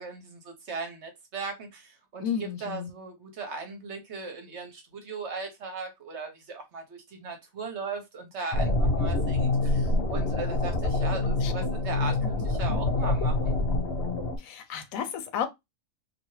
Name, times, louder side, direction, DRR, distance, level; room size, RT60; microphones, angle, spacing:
voice 1, 0.0-13.5, right 4 dB, 60° right, 1.1 m, -38 dB
voice 2, 2.2-2.9 11.2-11.5 14.4-15.5, left 8 dB, 80° left, 1.1 m, -32 dB
sound 1, 8.5-14.4, left 2 dB, 60° left, 0.8 m, -26 dB
3.1 x 2.7 x 2.7 m
omnidirectional pair, 1.4 m